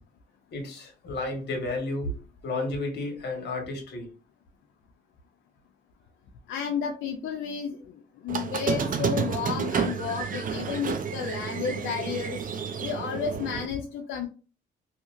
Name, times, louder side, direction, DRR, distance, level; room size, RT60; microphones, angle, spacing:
voice 1, 0.5-2.1 2.4-4.1, left 2 dB, 60° left, 2 dB, 1.4 m, -32 dB
voice 2, 6.5-14.3, left 7 dB, 75° left, 3 dB, 0.5 m, -32 dB
Squeak, 8.3-13.6, right 6 dB, 45° right, 0.5 m, -30 dB
2.8 x 2.8 x 2.4 m, 0.36 s
cardioid pair, 90°, 20 cm